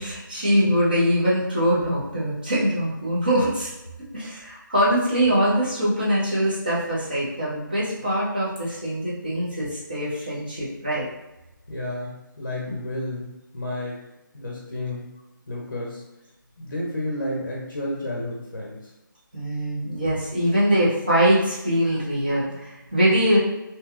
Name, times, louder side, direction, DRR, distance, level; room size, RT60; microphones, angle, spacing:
voice 1, 0.0-3.7 4.1-11.1 12.6-12.7 19.3-23.4, equal, 25° right, -8 dB, 0.7 m, -23 dB
voice 2, 11.7-14.0 14.3-15.1 15.5-16.0 16.6-18.9, left 1 dB, 45° left, -3 dB, 0.7 m, -31 dB
2.8 x 2.2 x 3.5 m, 0.99 s
figure-of-eight pair, 180°, 11 cm